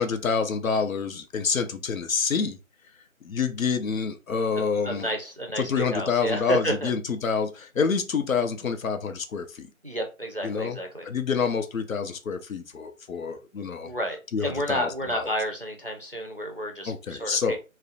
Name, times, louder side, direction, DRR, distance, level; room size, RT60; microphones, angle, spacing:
voice 1, 0.0-2.6 3.2-5.1 5.6-9.7 10.4-10.8 11.1-13.9 14.3-15.2 16.9-17.6, left 5 dB, 75° left, 0.6 m, -27 dB
voice 2, 4.5-6.9 9.8-11.1 13.8-17.6, equal, 45° right, 0.4 m, -31 dB
2.5 x 2.0 x 2.5 m
figure-of-eight pair, 175°, 41 cm